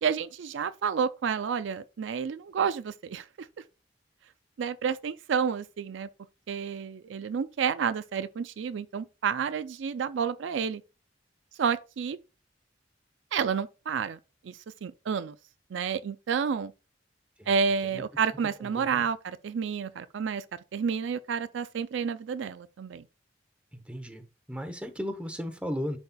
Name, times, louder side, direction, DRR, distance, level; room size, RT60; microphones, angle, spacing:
voice 1, 0.0-3.2 4.6-6.1 6.5-10.8 11.6-12.2 13.3-14.2 14.4-15.3 15.7-16.7 17.5-23.0, right 6 dB, 80° right, 0.4 m, -30 dB
voice 2, 23.9-24.2 24.5-26.0, equal, 5° right, 0.9 m, -34 dB
10.5 x 4.1 x 2.3 m
head